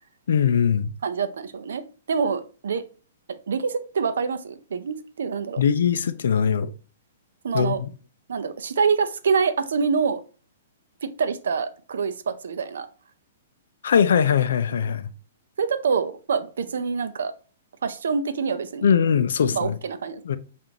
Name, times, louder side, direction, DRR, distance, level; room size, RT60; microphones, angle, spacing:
voice 1, 0.3-0.9 5.6-6.7 7.5-7.9 13.8-15.1 18.8-19.8 20.2-20.4, left 7 dB, 70° left, 0.4 m, -21 dB
voice 2, 1.0-2.8 3.5-5.6 7.4-7.8 8.3-10.2 11.0-12.9 14.8-14.9 15.6-17.3 17.8-18.9 19.5-20.2, right 5 dB, 90° right, 0.4 m, -26 dB
5.1 x 2.5 x 2.9 m
hypercardioid pair, 175°, 0 cm